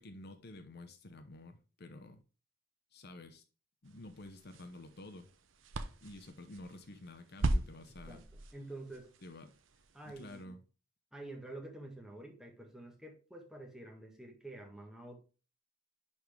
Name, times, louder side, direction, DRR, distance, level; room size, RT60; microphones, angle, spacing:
voice 1, 0.0-2.2 2.9-3.4 3.8-5.3 6.0-8.2 9.2-9.5 10.0-10.6, left 2 dB, 55° left, 0.8 m, -50 dB
sound 1, 3.8-10.4, right 2 dB, 70° right, 0.7 m, -40 dB
voice 2, 8.1-9.1 9.9-10.6 11.1-15.2, right 2 dB, 5° right, 1.5 m, -48 dB
10.5 x 4.3 x 3.5 m
head